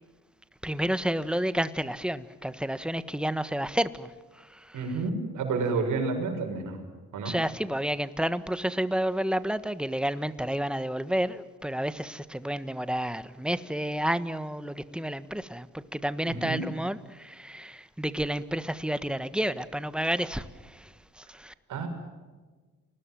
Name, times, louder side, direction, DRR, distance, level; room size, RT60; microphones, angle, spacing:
voice 1, 0.6-4.8 7.2-21.5, right 1 dB, 5° right, 1.5 m, -30 dB
voice 2, 4.7-6.8 7.1-7.3 16.3-16.6 21.7-21.9, right 4 dB, 80° right, 6.6 m, -30 dB
30.0 x 20.5 x 7.7 m
cardioid pair, 90°, 30 cm